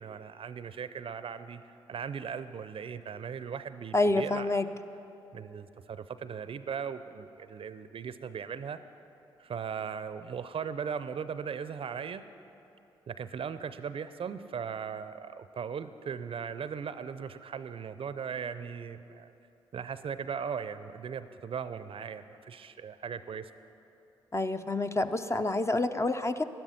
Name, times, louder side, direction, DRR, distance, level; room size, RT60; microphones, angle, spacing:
voice 1, 0.0-1.6 1.9-4.5 5.3-8.8 9.4-12.2 13.1-19.3 19.7-23.5, right 7 dB, 50° right, 13 dB, 0.5 m, -38 dB
voice 2, 3.9-4.6 24.3-26.4, left 2 dB, 25° left, 9 dB, 0.6 m, -28 dB
12.0 x 11.5 x 5.7 m, 2.8 s
hypercardioid pair, 40°, 12 cm